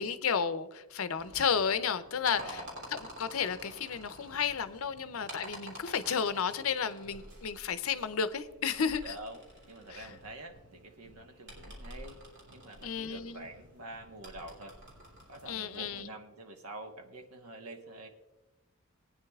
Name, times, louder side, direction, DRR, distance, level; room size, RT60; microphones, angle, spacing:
voice 1, 0.0-2.6 2.9-9.1 9.9-10.1 12.8-13.4 15.5-16.1, left 6 dB, 70° left, 12 dB, 0.6 m, -32 dB
sound 1, 1.2-16.0, equal, 55° right, 3.1 m, -50 dB
voice 2, 2.2-2.9 9.0-12.2 12.5-14.8 15.3-18.1, right 2 dB, 90° right, 4 dB, 1.3 m, -47 dB
19.0 x 9.4 x 2.4 m, 1.0 s
head